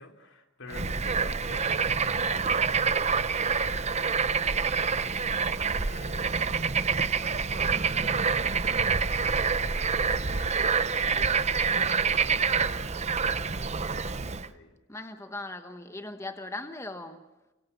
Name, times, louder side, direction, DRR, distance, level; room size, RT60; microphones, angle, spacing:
voice 1, 0.0-2.7 3.1-5.2 5.7-10.7 11.1-14.7, left 2 dB, 65° left, 3.6 m, -49 dB
Bird / Frog, 0.7-14.5, right 5 dB, 30° right, 0.8 m, -27 dB
voice 2, 14.9-17.3, left 2 dB, 15° left, 1.2 m, -39 dB
30.0 x 25.0 x 6.9 m
head